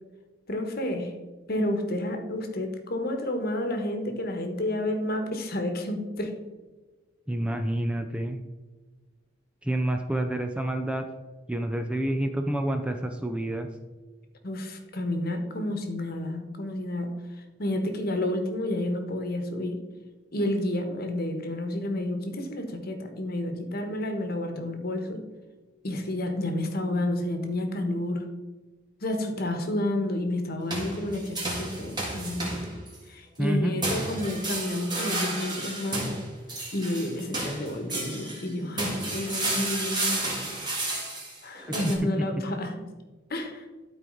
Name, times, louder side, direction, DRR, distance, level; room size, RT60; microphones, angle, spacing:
voice 1, 0.5-1.1 1.5-6.3 14.4-17.1 17.6-19.8 20.3-25.3 25.8-28.2 29.0-32.6 33.1-36.1 36.7-40.3 41.4-42.8 43.3-43.6, left 1 dB, 50° left, 6 dB, 1.2 m, -30 dB
voice 2, 7.3-8.4 9.6-11.1 11.5-13.7 33.4-33.8 41.7-41.9, right 1 dB, 5° right, 5 dB, 0.5 m, -28 dB
sound 1, 30.7-33.0 33.8-38.5 38.8-42.0, right 2 dB, 20° right, 1.9 m, -32 dB
12.0 x 4.6 x 3.9 m, 1.2 s
head